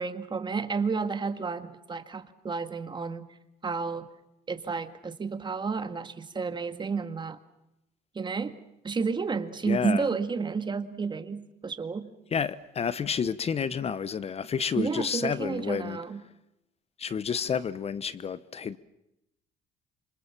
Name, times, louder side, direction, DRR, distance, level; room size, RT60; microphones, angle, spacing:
voice 1, 0.0-3.2 3.6-4.1 4.5-7.4 8.2-8.6 8.8-12.1 14.7-16.2, right 5 dB, 25° right, 2.0 m, -31 dB
voice 2, 9.6-10.1 12.3-16.0 17.0-18.8, left 7 dB, 35° left, 0.9 m, -30 dB
27.0 x 25.5 x 7.3 m
cardioid pair, 110°, 17 cm